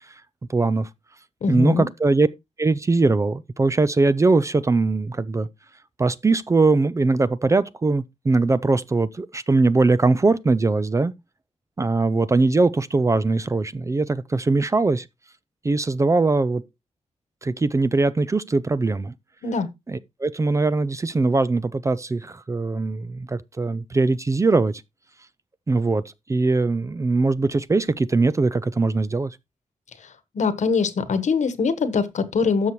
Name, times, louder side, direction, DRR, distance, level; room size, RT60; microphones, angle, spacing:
voice 1, 0.5-0.9 1.5-2.3 2.6-5.5 6.0-11.1 11.8-15.1 15.6-16.6 17.4-19.1 19.9-24.8 25.7-26.0 26.3-29.4, right 3 dB, 25° right, 0.4 m, -21 dB
voice 2, 1.4-1.9 19.4-19.7 30.3-32.7, left 5 dB, 70° left, 1.3 m, -22 dB
12.5 x 6.7 x 3.1 m
wide cardioid pair, 150°, 13 cm